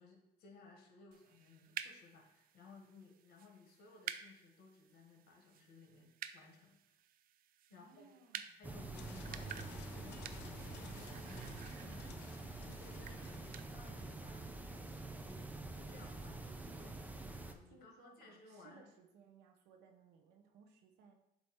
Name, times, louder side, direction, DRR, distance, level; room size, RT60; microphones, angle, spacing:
voice 1, 0.0-7.0 7.7-8.1 8.6-18.8, left 3 dB, 65° left, 1 dB, 1.6 m, -60 dB
sound 1, 1.1-13.7, right 10 dB, 60° right, 0.4 m, -52 dB
voice 2, 7.7-8.6 17.7-21.1, right 5 dB, 90° right, 4 dB, 1.0 m, -63 dB
sound 2, 8.6-17.5, right 2 dB, 10° right, 0.6 m, -47 dB
sound 3, 8.9-14.7, left 8 dB, 85° left, 0.6 m, -58 dB
7.8 x 2.9 x 4.8 m, 0.86 s
cardioid pair, 110°, 17 cm